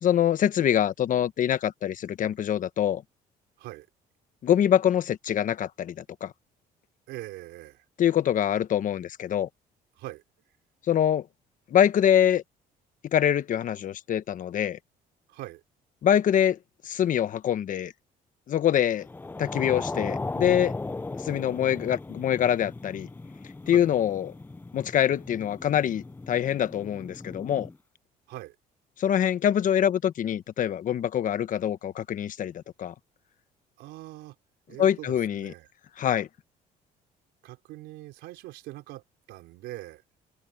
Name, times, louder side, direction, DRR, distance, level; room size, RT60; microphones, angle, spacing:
voice 1, 0.0-3.0 4.4-6.3 8.0-9.5 10.9-11.3 11.7-12.4 13.1-14.8 16.0-16.6 16.8-17.9 18.5-19.1 19.4-20.7 21.2-23.1 23.7-24.3 24.7-27.7 29.0-32.9 34.8-35.5 36.0-36.3, left 10 dB, 50° left, 1.1 m, -24 dB
voice 2, 7.1-7.8 10.0-10.2 15.3-15.6 23.6-23.9 28.3-28.6 33.8-34.4 34.7-35.7 37.4-40.0, right 17 dB, 90° right, 4.0 m, -42 dB
sound 1, 19.0-27.8, left 3 dB, 10° left, 0.5 m, -37 dB
cardioid pair, 110°, 17 cm